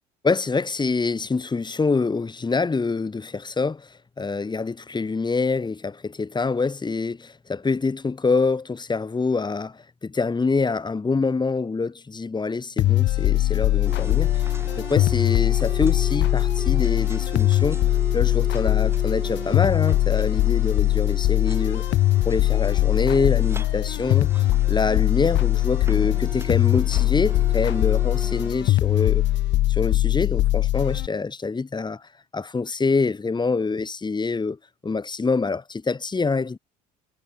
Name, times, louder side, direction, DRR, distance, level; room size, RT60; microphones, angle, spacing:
voice 1, 0.2-17.8 18.1-21.8 22.3-29.2 29.7-36.6, left 4 dB, 20° left, 1.9 m, -26 dB
sound 1, 12.8-31.1, left 16 dB, 65° left, 0.8 m, -21 dB
sound 2, 13.8-28.5, right 2 dB, 10° right, 2.9 m, -37 dB
supercardioid pair, 80°, 20 cm